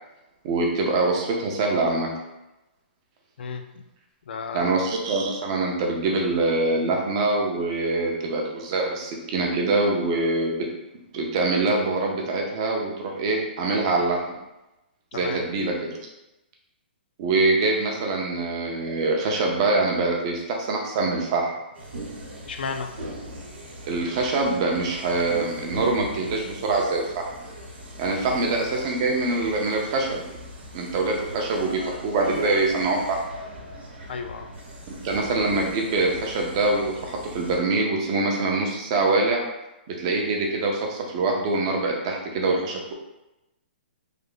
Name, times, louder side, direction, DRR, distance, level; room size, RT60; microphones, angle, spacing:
voice 1, 0.4-2.1 4.5-10.6 11.1-14.2 15.1-16.0 17.2-21.5 23.9-27.3 28.0-30.2 30.7-33.2 35.0-39.4 39.9-42.9, right 3 dB, 25° right, 0 dB, 0.5 m, -24 dB
voice 2, 3.4-3.8 4.3-4.8 15.1-15.4 22.4-22.9 28.3-28.5 34.1-34.5, left 5 dB, 60° left, 6 dB, 0.3 m, -33 dB
sound 1, 21.7-37.6, right 1 dB, 90° right, 0.9 m, -39 dB
3.3 x 2.0 x 3.7 m, 0.96 s
hypercardioid pair, 170°, 6 cm